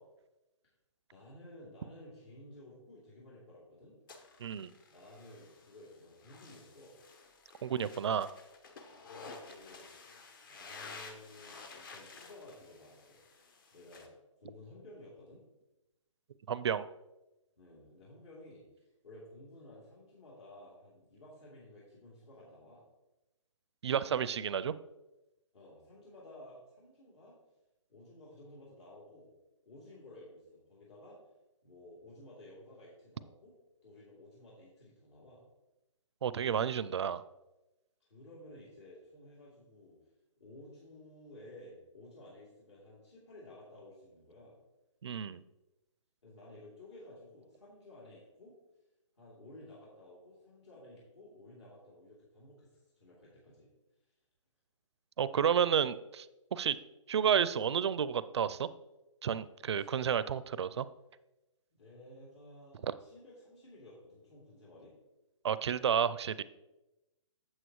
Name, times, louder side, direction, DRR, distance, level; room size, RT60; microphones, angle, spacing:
voice 1, 1.1-4.0 4.9-7.0 8.8-9.9 10.4-13.2 13.7-14.1 14.4-15.4 17.6-22.8 24.0-24.4 25.5-27.4 27.9-29.3 29.6-31.2 31.6-33.5 33.8-35.5 38.0-40.0 40.4-44.6 46.2-48.5 49.2-53.7 59.7-59.9 61.7-64.9, left 1 dB, 60° left, -6 dB, 3.0 m, -54 dB
sound 1, 4.1-14.1, left 4 dB, 40° left, 1.0 m, -52 dB
voice 2, 4.4-4.7 7.6-8.3 16.5-16.9 23.8-24.7 36.2-37.2 45.0-45.4 55.2-56.3 56.5-56.8 57.1-58.7 59.2-60.9 62.8-62.9 65.4-66.4, right 8 dB, 60° right, 16 dB, 0.4 m, -31 dB
8.2 x 7.4 x 3.0 m, 0.99 s
hypercardioid pair, 150°, 17 cm